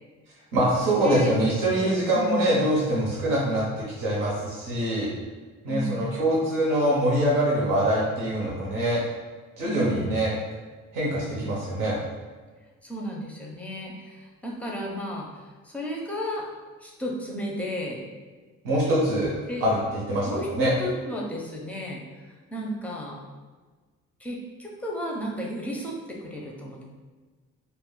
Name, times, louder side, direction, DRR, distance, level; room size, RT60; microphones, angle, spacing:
voice 1, 0.5-5.1 5.6-9.0 9.6-10.3 10.9-12.0 18.6-19.3 19.6-19.8 20.1-20.3 20.5-20.7, right 1 dB, 85° right, -6 dB, 0.9 m, -24 dB
voice 2, 2.1-2.6 5.7-6.1 9.6-10.1 12.8-16.5 16.8-18.0 19.5-19.6 20.2-20.5 20.8-22.0 22.5-23.2 24.2-26.8, equal, 5° left, -1 dB, 0.5 m, -33 dB
2.3 x 2.1 x 3.7 m, 1.4 s
cardioid pair, 85°, 32 cm